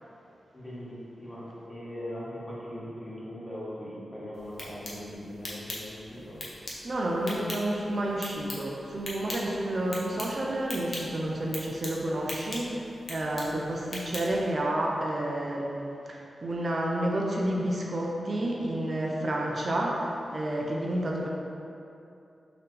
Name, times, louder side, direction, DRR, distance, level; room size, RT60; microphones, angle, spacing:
voice 1, 0.5-6.4, equal, 10° left, -8 dB, 1.1 m, -40 dB
sound 1, 4.3-14.5, left 1 dB, 55° left, 0.8 m, -42 dB
voice 2, 6.8-21.3, right 1 dB, 50° right, -2 dB, 0.5 m, -30 dB
3.9 x 2.8 x 3.2 m, 2.7 s
cardioid pair, 60°, 0 cm